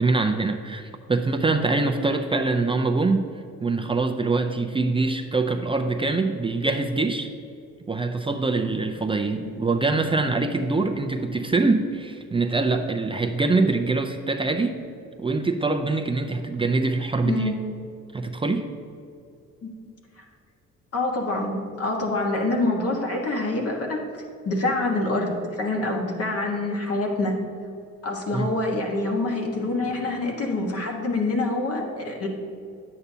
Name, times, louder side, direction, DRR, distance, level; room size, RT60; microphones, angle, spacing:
voice 1, 0.0-3.3 3.6-7.3 7.9-14.8 15.2-17.5 18.1-18.7 28.3-28.5, right 3 dB, 20° right, 4 dB, 0.5 m, -24 dB
voice 2, 20.9-24.0 24.4-27.3 28.0-32.3, left 2 dB, 50° left, 0 dB, 1.4 m, -26 dB
9.5 x 8.1 x 2.7 m, 2.6 s
cardioid pair, 90°, 30 cm